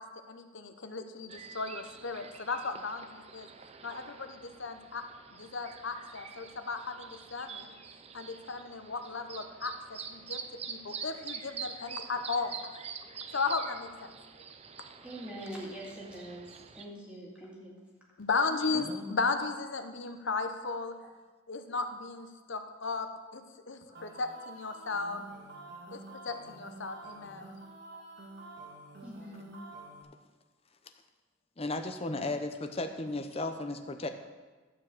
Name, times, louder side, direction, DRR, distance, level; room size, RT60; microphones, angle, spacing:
voice 1, 0.3-3.5 3.8-5.0 5.3-7.7 8.1-10.4 10.7-12.6 13.3-14.1 18.2-21.0 21.5-25.2 25.9-27.6, left 4 dB, 60° left, 7 dB, 0.8 m, -35 dB
sound 1, 1.3-16.8, right 6 dB, 30° right, 0.4 m, -46 dB
voice 2, 15.0-16.4 16.7-17.7 23.9-24.1 25.9-26.1 29.0-29.6, equal, 5° right, -5 dB, 2.1 m, -44 dB
voice 3, 18.7-19.2 31.6-34.1, left 2 dB, 30° left, 7 dB, 0.6 m, -35 dB
sound 2, 23.9-30.0, right 2 dB, 50° right, 1.5 m, -48 dB
12.0 x 4.6 x 7.6 m, 1.3 s
head